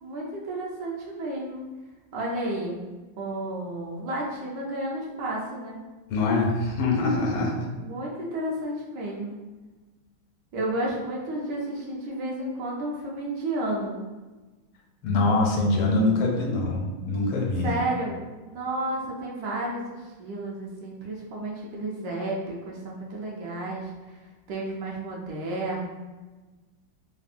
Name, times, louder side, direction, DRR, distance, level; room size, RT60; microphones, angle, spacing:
voice 1, 0.0-1.6 2.1-2.8 3.2-5.8 7.6-9.3 10.5-14.0 17.6-19.9 20.2-23.9 24.5-25.9, right 1 dB, 75° right, -3 dB, 1.2 m, -32 dB
voice 2, 6.1-7.7 15.0-17.7, left 2 dB, 85° left, -1 dB, 1.4 m, -24 dB
3.5 x 2.0 x 2.4 m, 1.2 s
omnidirectional pair, 2.1 m